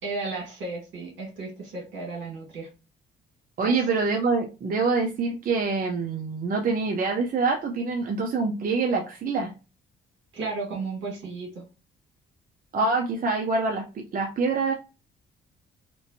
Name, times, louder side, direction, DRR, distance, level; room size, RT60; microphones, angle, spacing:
voice 1, 0.0-2.7 3.6-3.9 10.3-11.6, right 3 dB, 70° right, -1 dB, 1.7 m, -34 dB
voice 2, 3.6-9.5 12.7-14.7, right 4 dB, 45° right, 1 dB, 0.6 m, -25 dB
2.9 x 2.5 x 2.7 m, 0.31 s
cardioid pair, 90°, 20 cm